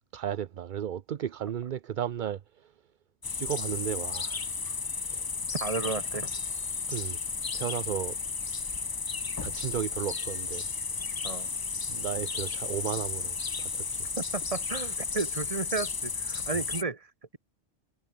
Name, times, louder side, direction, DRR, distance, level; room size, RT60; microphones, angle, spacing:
voice 1, 0.1-2.4 3.3-4.4 5.1-5.2 6.9-7.2 7.5-8.2 9.4-10.6 11.9-13.8, right 9 dB, 50° right, 0.7 m, -34 dB
sound 1, 3.2-16.8, left 5 dB, 35° left, 0.4 m, -33 dB
voice 2, 5.6-6.3 11.2-11.5 14.2-17.4, right 4 dB, 30° right, 1.4 m, -33 dB
omnidirectional pair, 1.2 m